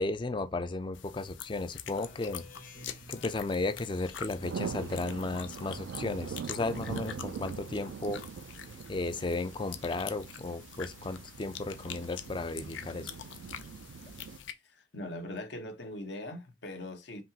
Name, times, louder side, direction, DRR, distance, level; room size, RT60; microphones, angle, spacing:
voice 1, 0.0-2.5 3.1-8.3 8.9-13.1, left 2 dB, 25° left, 0.4 m, -34 dB
sound 1, 0.9-14.5, left 9 dB, 90° left, 0.5 m, -46 dB
Speech synthesizer, 1.9-5.3, left 2 dB, 45° left, 1.1 m, -52 dB
sound 2, 4.4-14.4, right 7 dB, 80° right, 0.3 m, -42 dB
voice 2, 14.6-17.2, left 1 dB, 65° left, 0.9 m, -41 dB
5.2 x 2.9 x 2.7 m
head